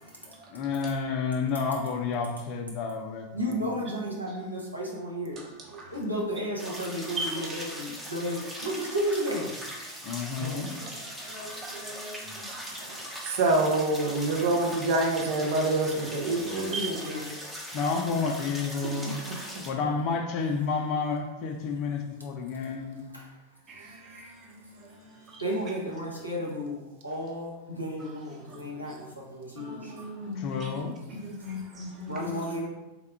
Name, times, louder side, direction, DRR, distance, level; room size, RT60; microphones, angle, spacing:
voice 1, 0.5-3.6 10.0-10.7 17.7-19.2 19.6-23.0 30.4-31.0, left 5 dB, 40° left, 4 dB, 0.4 m, -30 dB
voice 2, 3.3-5.5 5.9-9.5 16.7-17.4 23.1-23.3 25.4-29.9 31.9-32.7, equal, 85° right, -3 dB, 0.7 m, -33 dB
sound 1, 6.6-19.7, equal, ahead, 0.6 m, -40 dB
voice 3, 11.2-12.6 14.0-14.5 16.5-17.1 23.7-24.8 25.3-25.4 29.6-30.7 31.1-32.4, equal, 25° right, -3 dB, 0.9 m, -39 dB
voice 4, 12.8-16.7 18.8-18.9 19.3-19.6, right 2 dB, 50° right, 1 dB, 0.5 m, -27 dB
3.5 x 2.2 x 3.4 m, 1.1 s
figure-of-eight pair, 90°, 0 cm